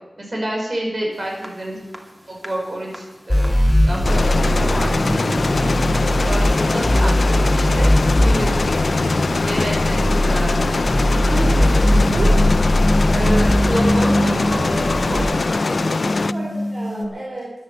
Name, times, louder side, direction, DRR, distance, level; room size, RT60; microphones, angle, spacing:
voice 1, 0.2-1.8 2.3-3.5 3.8-5.7 6.3-7.9 8.2-9.0 9.5-10.6 13.1-15.9, right 1 dB, 50° right, -1 dB, 5.4 m, -28 dB
sound 1, 1.4-1.5 1.9-2.0 2.4-2.5 2.9-3.0 3.4-3.5 3.9-4.0 4.3-4.6 4.9-5.0 5.4-5.5 5.9-6.0 6.3-6.4 8.3-8.4 8.8-17.0, equal, 15° right, 2.4 m, -26 dB
sound 2, 3.3-15.2, equal, 15° left, 6.5 m, -19 dB
sound 3, 4.0-16.3, left 3 dB, 75° left, 0.4 m, -22 dB
voice 2, 11.2-12.3 15.8-17.5, right 1 dB, 75° right, -4 dB, 4.2 m, -30 dB
12.5 x 11.0 x 7.2 m, 1.0 s
wide cardioid pair, 60°, 0 cm